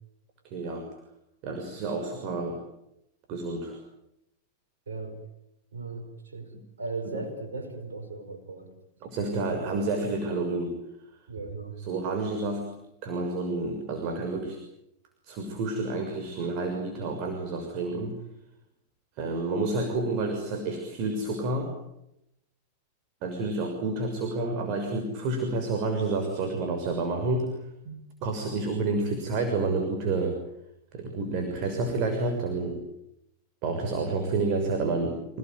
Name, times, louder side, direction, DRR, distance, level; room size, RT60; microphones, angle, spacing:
voice 1, 0.4-0.9 1.4-2.6 3.3-3.8 9.0-10.8 11.8-12.7 13.0-14.6 15.2-18.2 19.2-21.7 23.2-27.5 27.8-30.3 30.9-32.8 33.6-35.4, right 3 dB, 50° right, 5 dB, 6.4 m, -29 dB
voice 2, 4.9-5.2 5.7-6.5 6.8-8.7 9.3-9.6 11.3-11.8, right 3 dB, 85° right, 4 dB, 5.5 m, -37 dB
28.5 x 18.5 x 9.5 m, 0.83 s
hypercardioid pair, 100°, 0 cm